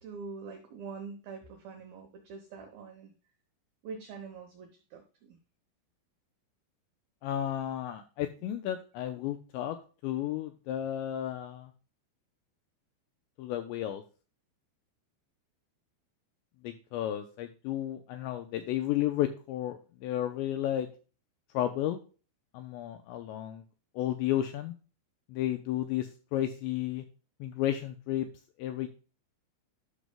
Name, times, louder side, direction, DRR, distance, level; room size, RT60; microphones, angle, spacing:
voice 1, 0.0-3.1 3.8-5.0 5.3-5.4, right 5 dB, 85° right, 4 dB, 2.1 m, -44 dB
voice 2, 7.2-9.8 10.0-11.7 13.4-14.0 16.6-20.9 21.5-22.0 22.5-23.6 24.0-24.7 25.3-27.0 27.4-28.3 28.6-28.9, left 12 dB, 85° left, 7 dB, 2.6 m, -32 dB
12.0 x 6.2 x 2.2 m, 0.35 s
omnidirectional pair, 5.7 m